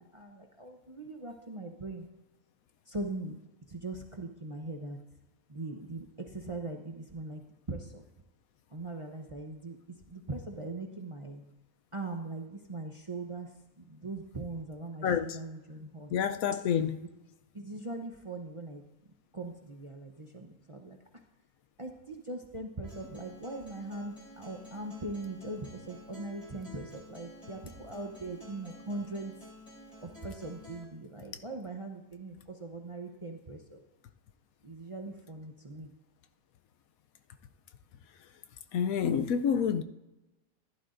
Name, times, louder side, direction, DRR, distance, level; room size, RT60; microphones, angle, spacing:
voice 1, 0.0-2.1 2.9-3.4 3.7-5.0 5.5-7.4 7.7-8.0 8.7-9.8 10.1-11.4 11.9-13.5 13.8-16.1 17.5-18.8 19.3-21.0 21.8-29.3 30.0-33.8 34.6-35.9, right 2 dB, 30° right, 0.6 m, -40 dB
voice 2, 15.0-15.4 16.1-17.0 38.7-39.8, left 7 dB, 75° left, 1.1 m, -28 dB
Acoustic guitar, 22.8-30.8, left 1 dB, 25° left, 3.4 m, -51 dB
15.0 x 11.0 x 2.6 m
omnidirectional pair, 1.5 m